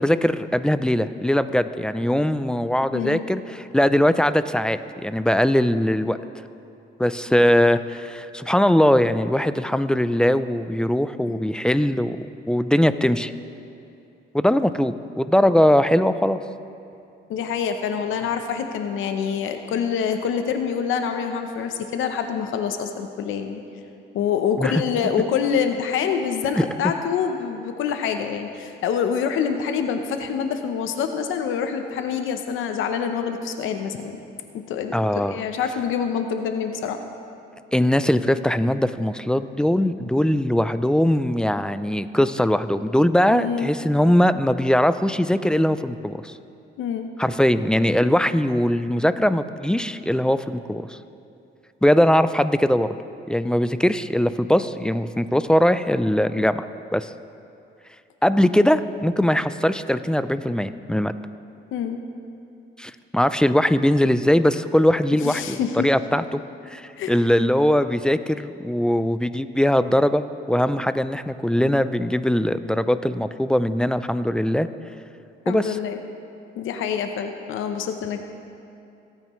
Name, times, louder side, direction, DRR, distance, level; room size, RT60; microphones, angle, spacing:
voice 1, 0.0-6.2 7.0-13.3 14.3-16.4 24.6-24.7 26.5-26.7 34.9-35.4 37.7-46.3 47.2-51.0 51.8-52.9 53.3-56.7 56.9-57.1 58.2-61.1 62.8-66.4 66.7-74.7 75.5-75.8, left 1 dB, 5° left, 12 dB, 0.4 m, -21 dB
voice 2, 2.9-3.3 17.3-23.6 24.1-34.2 34.5-37.0 43.3-43.7 46.8-47.1 61.7-62.0 65.2-65.9 67.0-67.1 75.5-76.0 76.5-78.2, left 7 dB, 85° left, 6 dB, 0.8 m, -26 dB
22.5 x 9.0 x 3.1 m, 2.6 s
cardioid pair, 90°, 20 cm